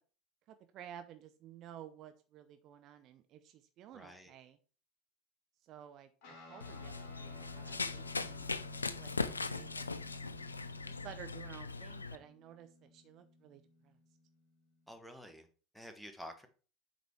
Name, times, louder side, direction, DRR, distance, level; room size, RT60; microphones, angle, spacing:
voice 1, 0.5-4.6 5.6-9.1 9.5-10.3 10.9-14.0, right 10 dB, 45° right, 0.6 m, -54 dB
voice 2, 3.9-4.3 14.9-15.5 15.7-16.5, equal, ahead, 1.3 m, -50 dB
Guitar, 6.2-15.0, left 2 dB, 50° left, 2.2 m, -56 dB
Run, 6.6-12.1, left 4 dB, 80° left, 0.4 m, -40 dB
8.0 x 4.2 x 4.6 m
figure-of-eight pair, 70°, 0 cm